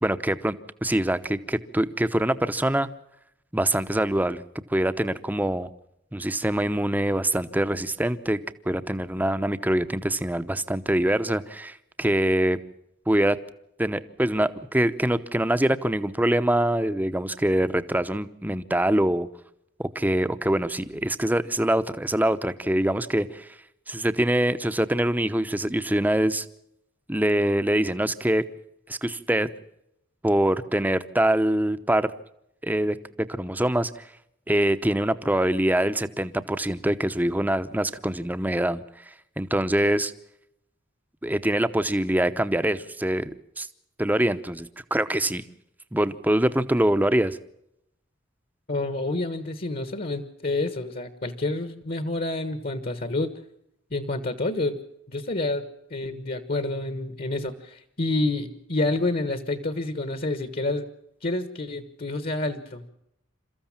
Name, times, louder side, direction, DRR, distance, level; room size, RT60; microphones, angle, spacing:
voice 1, 0.0-0.6 0.8-2.9 3.5-5.7 6.1-8.4 8.7-12.6 13.1-13.4 13.8-19.3 19.8-23.5 23.9-26.5 27.1-28.4 28.9-29.5 30.2-32.1 32.6-33.0 33.3-34.0 34.5-38.8 39.4-40.1 41.2-43.3 43.6-43.7 44.0-45.4 45.9-47.4, right 1 dB, 10° right, 11 dB, 0.8 m, -24 dB
voice 2, 48.7-53.3 53.9-54.8 55.1-60.9 61.2-62.9, left 2 dB, 50° left, 10 dB, 1.4 m, -28 dB
28.0 x 14.5 x 7.3 m, 0.79 s
head